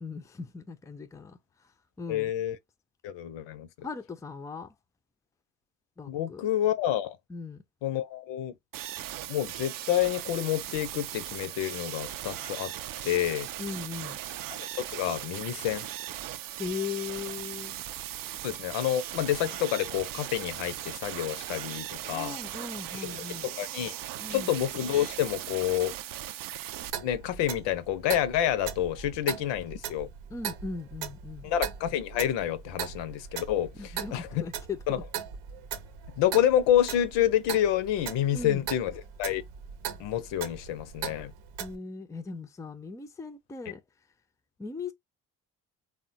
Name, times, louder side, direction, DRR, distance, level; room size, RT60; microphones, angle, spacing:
voice 1, 0.0-1.7 2.0-2.3 3.8-4.7 6.0-6.5 7.3-7.6 13.6-14.2 16.6-17.8 22.1-23.5 24.2-24.6 30.3-31.5 33.8-35.0 38.3-38.6 41.6-43.8 44.6-44.9, left 4 dB, 5° left, 0.4 m, -38 dB
voice 2, 2.1-2.6 3.0-3.9 6.1-7.2 7.8-8.5 9.3-12.7 13.0-13.5 14.8-15.9 18.4-22.4 22.9-23.9 24.3-26.0 27.0-30.1 31.4-34.4 34.9-35.0 36.2-39.4 40.0-41.3, left 11 dB, 70° left, 0.6 m, -28 dB
sound 1, 8.7-26.9, right 13 dB, 50° right, 0.5 m, -38 dB
Clock, 26.8-41.8, right 8 dB, 70° right, 0.8 m, -39 dB
3.4 x 2.1 x 2.7 m
hypercardioid pair, 50°, 45 cm